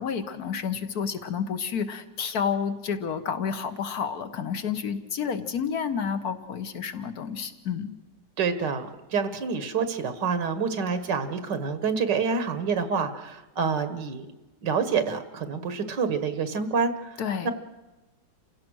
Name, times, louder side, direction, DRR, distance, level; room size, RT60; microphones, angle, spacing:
voice 1, 0.0-7.9 17.2-17.5, left 7 dB, 60° left, 10 dB, 1.7 m, -30 dB
voice 2, 8.4-14.3 14.6-17.5, right 5 dB, 80° right, 11 dB, 1.9 m, -27 dB
29.0 x 16.5 x 6.3 m, 1.1 s
omnidirectional pair, 1.9 m